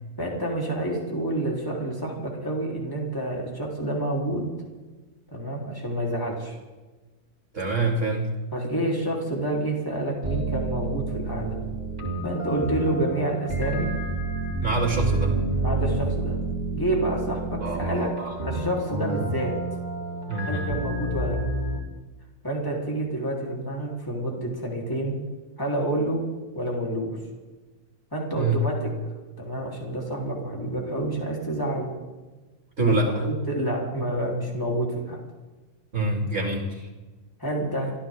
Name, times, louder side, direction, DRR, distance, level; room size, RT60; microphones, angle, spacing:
voice 1, 0.2-4.5 5.3-6.6 8.5-11.5 12.2-13.9 15.6-16.4 16.7-18.1 18.4-19.5 20.5-21.4 22.4-25.1 25.6-26.2 26.5-27.2 28.1-28.9 29.4-31.9 32.8-35.2 37.4-37.9, right 1 dB, 15° left, -2 dB, 4.0 m, -28 dB
voice 2, 7.5-8.3 14.6-15.4 17.6-18.3 19.1-19.2 20.3-20.7 28.4-28.6 32.8-33.1 35.9-36.9, right 2 dB, 65° right, 1 dB, 3.0 m, -26 dB
sound 1, 10.2-21.8, right 2 dB, 40° right, 3.5 m, -29 dB
25.0 x 15.0 x 3.8 m, 1.2 s
omnidirectional pair, 1.3 m